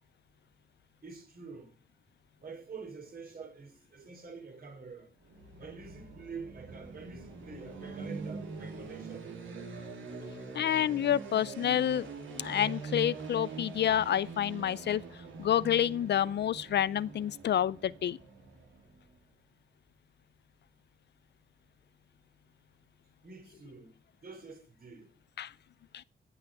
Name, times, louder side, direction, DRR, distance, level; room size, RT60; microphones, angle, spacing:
voice 1, 1.0-1.7 2.4-5.1 5.6-9.7 23.2-23.9 24.2-25.1, right 4 dB, 50° right, 3.4 m, -47 dB
sound 1, 5.2-19.1, right 4 dB, 80° right, 3.0 m, -44 dB
voice 2, 10.5-12.1 12.3-15.0 15.4-18.2 25.4-25.5 25.9-26.0, left 10 dB, 60° left, 0.5 m, -28 dB
16.0 x 6.0 x 4.8 m
cardioid pair, 70°, 20 cm